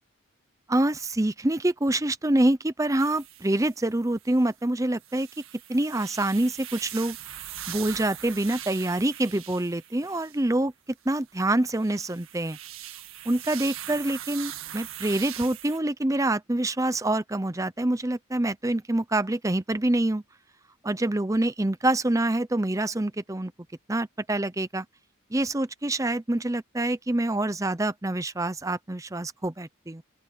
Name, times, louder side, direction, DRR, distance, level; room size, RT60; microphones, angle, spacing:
voice 1, 0.7-5.3 5.7-7.2 7.7-10.7 11.1-12.6 13.3-20.2 20.8-23.5 23.9-24.9 25.3-30.0, right 1 dB, 15° right, 0.6 m, -26 dB
sound 1, 3.0-4.5 5.0-10.4 11.4-15.8, right 11 dB, 85° right, 1.9 m, -41 dB
open air
head